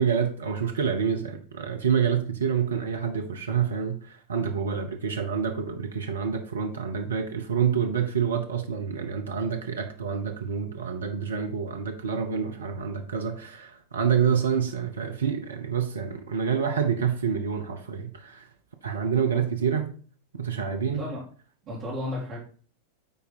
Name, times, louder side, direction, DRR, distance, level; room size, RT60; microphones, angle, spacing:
voice 1, 0.0-18.5 18.8-19.9 20.3-21.0, right 7 dB, 70° right, 0.8 m, -27 dB
voice 2, 20.9-21.2 21.6-22.4, left 1 dB, 30° right, 2.7 m, -33 dB
9.5 x 4.1 x 4.2 m
figure-of-eight pair, 90°, 0 cm